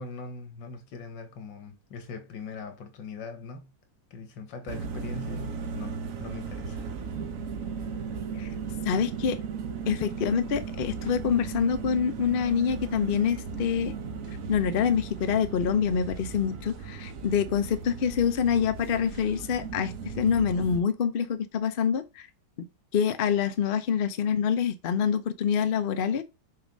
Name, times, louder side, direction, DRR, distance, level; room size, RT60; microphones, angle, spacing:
voice 1, 0.0-3.7 4.1-6.9, left 4 dB, 90° left, 2.0 m, -41 dB
sound 1, 4.7-20.8, right 5 dB, 55° right, 1.1 m, -36 dB
voice 2, 8.8-9.4 9.9-13.9 14.5-22.3 22.9-26.2, left 7 dB, 60° left, 0.5 m, -26 dB
6.6 x 3.5 x 5.2 m
omnidirectional pair, 2.0 m